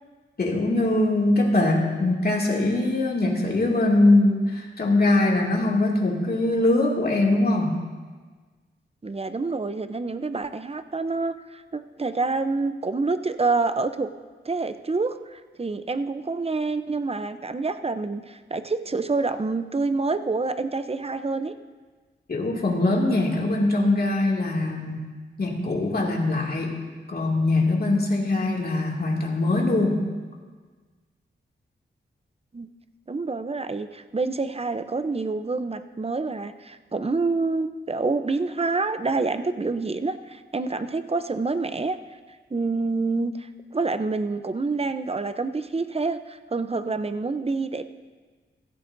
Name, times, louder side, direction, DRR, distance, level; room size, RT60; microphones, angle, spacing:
voice 1, 0.4-7.8 22.3-25.1 25.4-26.8 27.1-30.1, left 2 dB, 50° left, -2 dB, 2.5 m, -22 dB
voice 2, 9.0-14.1 14.4-21.5 32.5-32.7 33.1-42.0 42.5-47.8, right 3 dB, 30° right, 10 dB, 0.7 m, -27 dB
15.0 x 15.0 x 2.7 m, 1.4 s
cardioid pair, 65°, 20 cm